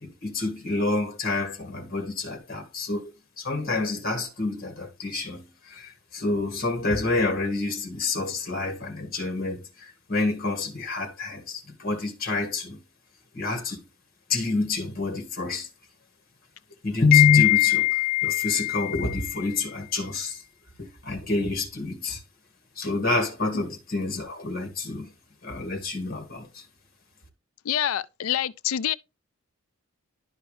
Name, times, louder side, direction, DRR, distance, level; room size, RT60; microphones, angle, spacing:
voice 1, 0.0-3.1 3.4-12.8 13.3-13.8 14.3-15.7 16.8-20.4 20.8-22.2 22.8-25.1 25.4-26.6, left 5 dB, 45° left, 1.8 m, -26 dB
voice 2, 27.6-28.9, left 10 dB, 80° left, 0.4 m, -27 dB
11.5 x 4.7 x 3.2 m
head